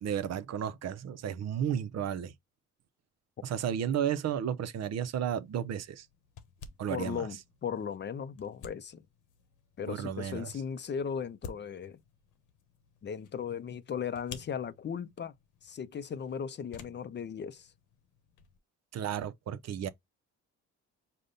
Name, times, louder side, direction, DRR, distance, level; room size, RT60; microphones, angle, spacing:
voice 1, 0.0-2.3 3.4-6.1 6.8-7.3 9.9-10.5 18.9-19.9, right 9 dB, 60° right, 0.6 m, -33 dB
sound 1, 5.0-18.6, left 6 dB, 85° left, 1.0 m, -54 dB
voice 2, 6.9-9.1 9.8-12.0 13.0-15.3 15.6-17.7, left 7 dB, 35° left, 0.5 m, -37 dB
5.1 x 2.2 x 3.9 m
cardioid pair, 90°, 30 cm